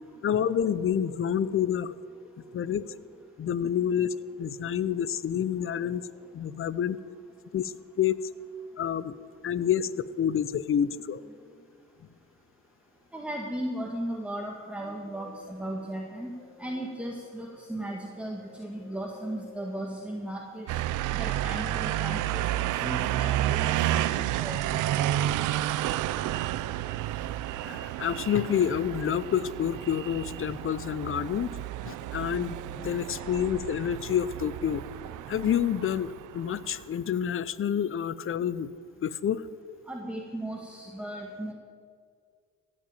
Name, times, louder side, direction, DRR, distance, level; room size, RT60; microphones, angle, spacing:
voice 1, 0.2-1.9 2.5-3.0 3.4-6.0 6.3-7.0 7.5-8.2 8.8-9.1 9.4-11.2 27.6-31.5 31.8-34.8 35.3-38.7 39.0-39.4, left 9 dB, 45° left, 17 dB, 0.7 m, -28 dB
voice 2, 13.1-20.7 21.1-22.5 22.8-24.8 33.2-33.3 39.9-41.5, right 1 dB, 5° right, 0 dB, 1.6 m, -36 dB
sound 1, 20.7-36.8, right 13 dB, 85° right, 0.6 m, -31 dB
15.5 x 7.6 x 8.9 m, 2.1 s
cardioid pair, 90°, 30 cm